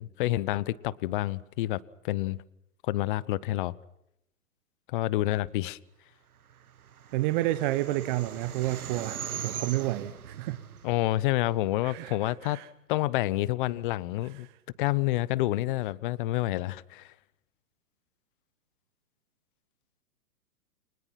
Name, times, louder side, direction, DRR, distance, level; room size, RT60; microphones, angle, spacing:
voice 1, 0.0-2.4 2.8-3.7 4.9-5.8 10.8-12.6 12.9-14.5 14.8-17.1, left 16 dB, 35° left, 1.0 m, -28 dB
sound 1, 6.5-11.9, right 8 dB, 75° right, 1.5 m, -40 dB
voice 2, 7.1-10.6 11.8-12.7, right 16 dB, 35° right, 1.3 m, -30 dB
30.0 x 23.5 x 6.0 m
hypercardioid pair, 135°, 44 cm